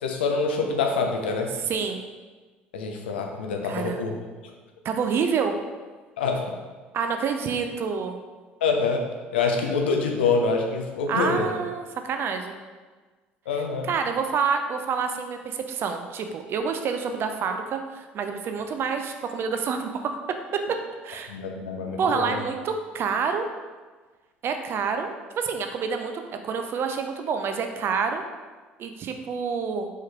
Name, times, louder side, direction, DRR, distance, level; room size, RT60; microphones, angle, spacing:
voice 1, 0.0-1.5 2.7-4.2 6.2-6.5 8.6-9.0 9.3-11.5 13.5-13.9 21.3-22.4, left 4 dB, 70° left, 2 dB, 0.5 m, -25 dB
voice 2, 1.7-2.0 3.6-4.0 4.8-5.5 6.9-8.2 11.1-12.6 13.8-20.2 20.5-20.6 21.0-21.3 22.0-23.5 24.4-28.2 28.8-29.9, right 6 dB, 40° right, 6 dB, 0.5 m, -28 dB
4.5 x 4.4 x 2.3 m, 1.4 s
figure-of-eight pair, 55°, 6 cm